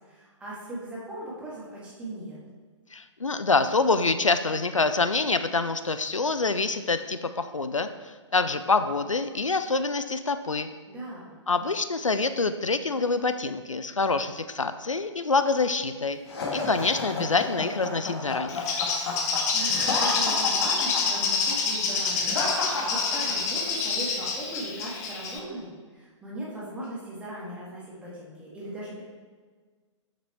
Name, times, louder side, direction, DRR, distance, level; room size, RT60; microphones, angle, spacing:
voice 1, 0.1-2.4 10.9-11.4 19.5-29.0, right 1 dB, 5° right, -7 dB, 1.9 m, -38 dB
voice 2, 2.9-10.7 11.5-16.2 16.5-18.7, left 3 dB, 85° left, 10 dB, 0.4 m, -26 dB
sound 1, 16.3-23.7, left 3 dB, 50° left, 1.7 m, -31 dB
Bird, 18.5-25.4, left 5 dB, 30° left, 0.9 m, -27 dB
6.7 x 6.1 x 4.3 m, 1.5 s
figure-of-eight pair, 125°, 16 cm